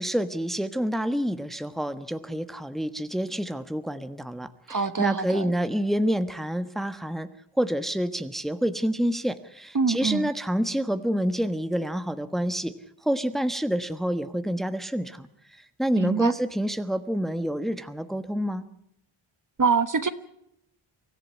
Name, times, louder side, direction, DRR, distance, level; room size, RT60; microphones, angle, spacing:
voice 1, 0.0-7.3 7.6-12.7 13.0-15.3 15.8-18.7, equal, ahead, 11 dB, 1.2 m, -28 dB
voice 2, 4.7-5.5 9.7-10.3 16.0-16.3 19.6-20.1, right 5 dB, 40° right, 12 dB, 1.2 m, -25 dB
24.5 x 14.5 x 9.6 m, 0.78 s
cardioid pair, 70°, 50 cm